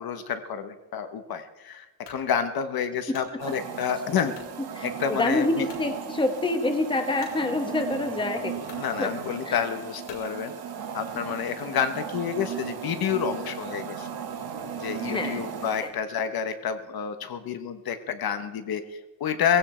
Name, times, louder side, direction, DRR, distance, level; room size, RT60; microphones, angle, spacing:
voice 1, 0.0-4.3 4.8-5.7 8.7-10.5 10.9-14.1 14.8-19.6, left 7 dB, 55° left, 9 dB, 1.3 m, -29 dB
sound 1, 2.0-2.3 2.8-3.3 4.3-4.6 5.1-5.2 5.7-5.9 7.2-7.4 8.2-8.3 8.6-8.9 10.0-10.3, left 5 dB, 75° left, 3.6 m, -47 dB
sound 2, 3.4-15.9, right 7 dB, 60° right, 2.5 m, -36 dB
voice 2, 4.7-8.5 9.0-9.1 9.4-9.6 15.0-15.5 15.8-15.9, left 2 dB, 10° left, 6 dB, 1.3 m, -27 dB
18.5 x 16.0 x 4.5 m, 1.1 s
cardioid pair, 160°, 44 cm